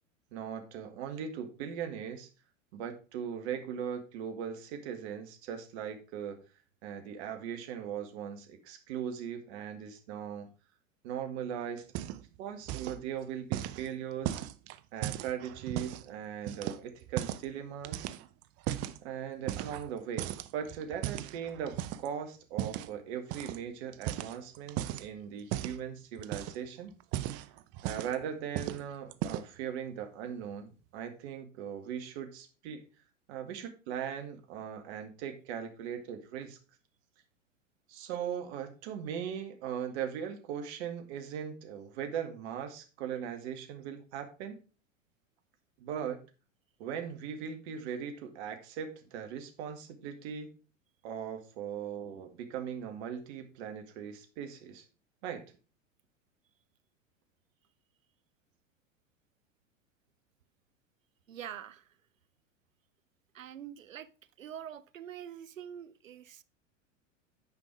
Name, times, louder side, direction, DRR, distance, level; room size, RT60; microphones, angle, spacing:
voice 1, 0.3-2.3 2.7-6.4 6.8-10.5 11.0-11.8 12.2-14.4 14.9-18.1 19.0-26.9 27.3-27.4 27.8-32.8 33.3-36.6 37.9-44.6 45.8-46.2 46.8-50.5 51.0-54.8 55.2-55.4, right 8 dB, 55° right, 2.0 m, -39 dB
sound 1, 11.8-12.4 12.6-13.0 13.5-16.1 16.5-17.5 17.8-19.0 19.5-19.9 20.2-22.1 22.6-22.9 23.3-23.6 23.9-25.1 25.5-25.8 26.2-26.7 27.0-28.2 28.6-28.8 29.1-29.6, right 13 dB, 40° right, 0.7 m, -36 dB
voice 2, 61.3-61.9 63.3-64.1 64.4-66.4, right 9 dB, 80° right, 0.8 m, -45 dB
9.7 x 5.3 x 4.9 m
hypercardioid pair, 90°, 39 cm